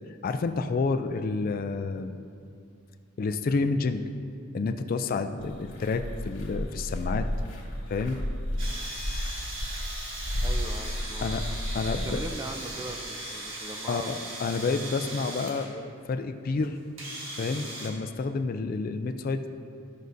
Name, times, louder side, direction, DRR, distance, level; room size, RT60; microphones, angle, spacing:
voice 1, 0.2-2.3 3.2-4.0 4.5-7.3 7.9-8.2 11.2-11.5 11.7-12.2 13.9-16.8 17.4-19.5, left 4 dB, 45° left, 8 dB, 0.3 m, -29 dB
sound 1, 5.4-12.3, equal, 65° left, 1.8 m, -33 dB
sound 2, 8.6-15.7 16.6-16.7 17.0-17.9, right 1 dB, 70° right, 1.5 m, -38 dB
voice 2, 10.4-11.4 12.0-14.2, right 2 dB, 15° right, 5 dB, 0.4 m, -39 dB
13.0 x 6.3 x 2.6 m, 2.3 s
head